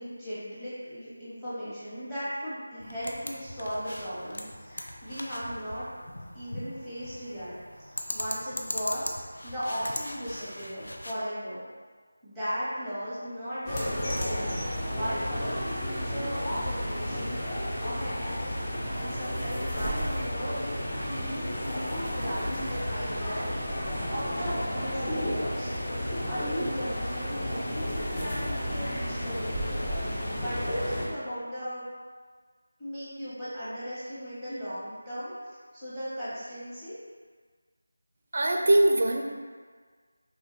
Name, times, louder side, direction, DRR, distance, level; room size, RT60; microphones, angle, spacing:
voice 1, 0.0-5.9 6.3-7.6 7.9-11.6 12.2-17.4 17.8-18.2 18.9-20.7 21.1-23.5 24.1-25.7 26.3-31.9 32.8-35.3 35.7-37.0, equal, ahead, -13 dB, 0.9 m, -37 dB
sound 1, 2.8-11.1, left 1 dB, 75° left, 0.4 m, -39 dB
sound 2, 13.7-31.1, equal, 20° left, 0.5 m, -32 dB
voice 2, 38.3-39.3, right 1 dB, 55° right, 2 dB, 0.4 m, -22 dB
3.0 x 2.3 x 3.1 m, 1.5 s
figure-of-eight pair, 165°, 0 cm